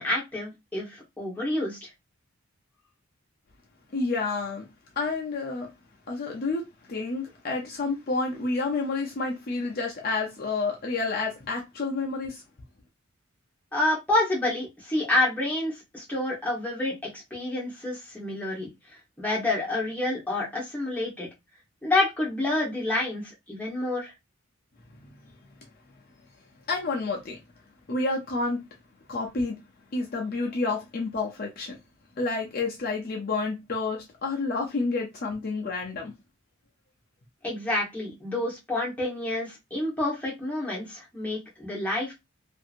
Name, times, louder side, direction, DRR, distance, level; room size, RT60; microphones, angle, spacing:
voice 1, 0.0-1.9 13.7-18.7 19.2-21.3 21.8-24.1 37.4-42.1, left 2 dB, 5° left, 1.1 m, -28 dB
voice 2, 3.9-4.7 5.0-5.7 6.1-12.4 26.7-27.4 27.9-28.6 29.1-29.6 29.9-31.8 32.2-36.1, left 3 dB, 45° left, 0.5 m, -29 dB
2.7 x 2.6 x 2.5 m
head